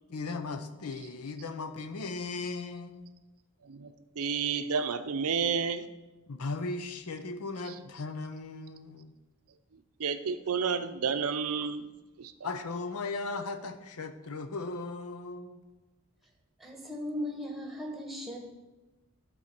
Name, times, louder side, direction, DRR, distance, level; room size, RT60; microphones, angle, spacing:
voice 1, 0.1-3.1 6.3-9.1 12.4-15.6, left 3 dB, 90° left, 0.8 m, -37 dB
voice 2, 3.6-5.9 7.7-7.8 10.0-11.9 12.2-12.3, right 6 dB, 85° right, 0.6 m, -31 dB
voice 3, 16.6-18.5, left 1 dB, ahead, 1.2 m, -37 dB
11.5 x 4.4 x 6.0 m
head